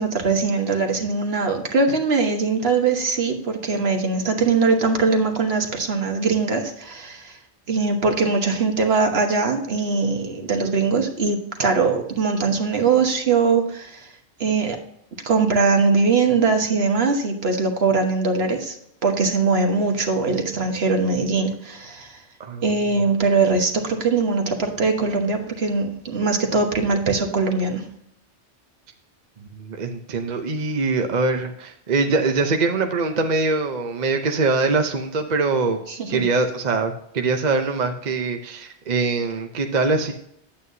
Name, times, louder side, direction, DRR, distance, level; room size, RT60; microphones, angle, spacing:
voice 1, 0.0-7.4 7.7-14.1 14.4-14.8 15.2-18.7 19.0-22.2 22.6-27.8 35.9-36.2, right 4 dB, 60° right, 3 dB, 1.4 m, -21 dB
voice 2, 29.5-35.8 36.1-40.1, right 3 dB, 45° right, 5 dB, 0.7 m, -23 dB
9.3 x 8.5 x 2.7 m, 0.72 s
omnidirectional pair, 1.2 m